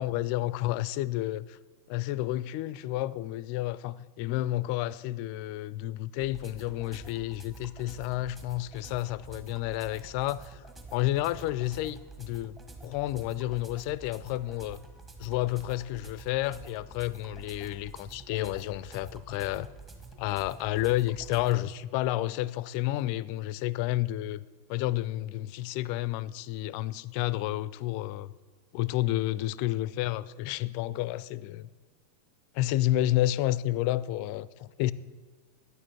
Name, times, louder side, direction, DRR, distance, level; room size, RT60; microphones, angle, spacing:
voice 1, 0.0-1.6 1.9-10.6 10.9-14.8 15.2-19.7 20.2-24.4 24.7-28.3 28.7-31.7 32.5-34.9, left 15 dB, 45° left, 0.4 m, -30 dB
sound 1, 6.2-21.6, right 3 dB, 20° right, 1.6 m, -48 dB
9.8 x 7.4 x 8.2 m
figure-of-eight pair, 90°, 0 cm